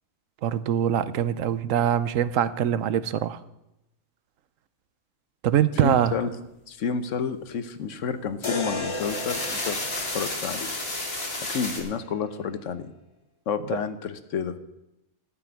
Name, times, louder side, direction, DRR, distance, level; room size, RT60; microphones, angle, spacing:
voice 1, 0.4-3.4 5.4-6.1 13.7-13.8, right 10 dB, 80° right, 15 dB, 1.0 m, -23 dB
voice 2, 5.8-6.3 6.7-9.8 10.1-10.7 11.5-12.9 13.5-14.6, left 6 dB, 70° left, 11 dB, 1.2 m, -30 dB
sound 1, 8.4-12.5, left 2 dB, 25° left, 0.8 m, -35 dB
sound 2, 8.9-11.8, left 2 dB, 50° left, 2.6 m, -32 dB
13.5 x 6.0 x 9.3 m, 0.89 s
omnidirectional pair, 1.4 m